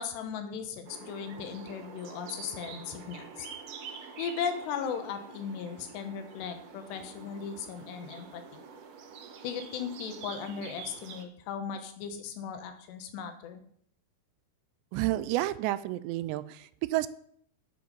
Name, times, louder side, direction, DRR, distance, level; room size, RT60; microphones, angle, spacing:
voice 1, 0.0-3.5 4.2-8.6 9.4-13.6, left 7 dB, 80° left, 7 dB, 3.3 m, -37 dB
sound 1, 0.9-11.2, right 5 dB, 70° right, 2.0 m, -46 dB
voice 2, 14.9-17.1, right 16 dB, 85° right, 16 dB, 2.7 m, -30 dB
11.0 x 7.8 x 5.4 m, 0.65 s
omnidirectional pair, 5.0 m